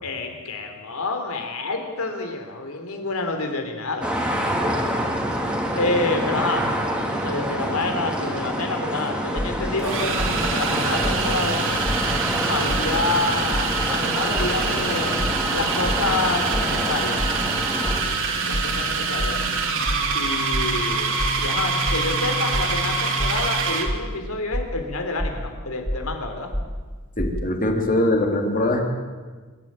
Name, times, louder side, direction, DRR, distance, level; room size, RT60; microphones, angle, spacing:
voice 1, 0.0-4.1 4.6-4.9 5.7-11.6 12.5-17.2 18.5-19.4 20.1-26.5, left 3 dB, 80° left, 4 dB, 3.7 m, -28 dB
sound 1, 4.0-18.0, equal, 5° right, 2.5 m, -27 dB
sound 2, 8.5-8.6 9.8-24.0, right 4 dB, 65° right, 2.9 m, -25 dB
sound 3, 9.4-9.7 10.2-10.5 11.0-11.4 11.8-12.2 12.7-13.0 13.5-13.9 14.4-14.7 15.2-15.5 15.9-16.2 16.5-16.8 17.2-17.5 17.9-18.2 18.5-18.8 19.2-19.5 19.9-20.2 20.5-20.8 21.2-21.5 21.9-22.2 22.5-22.8 23.2-23.5 23.9-24.2 24.5-24.8 25.2-25.5 25.8-26.2 26.5-26.8 27.2-27.4, equal, 10° left, 4.7 m, -27 dB
voice 2, 27.2-28.8, left 1 dB, 40° left, 2 dB, 3.3 m, -22 dB
26.0 x 13.0 x 9.0 m, 1.4 s
head